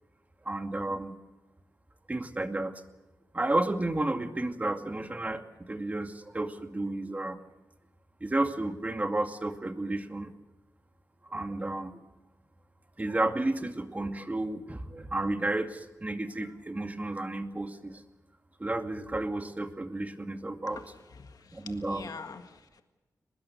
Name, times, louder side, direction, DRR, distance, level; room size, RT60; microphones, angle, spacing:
voice 1, 0.5-1.2 2.1-2.8 3.3-7.4 8.2-10.3 11.3-12.0 13.0-18.0 18.6-20.8 21.5-22.1, right 2 dB, 25° right, 6 dB, 2.3 m, -32 dB
voice 2, 20.7-22.8, left 5 dB, 70° left, 7 dB, 1.7 m, -46 dB
23.5 x 21.0 x 6.9 m, 1.1 s
cardioid pair, 85°, 7 cm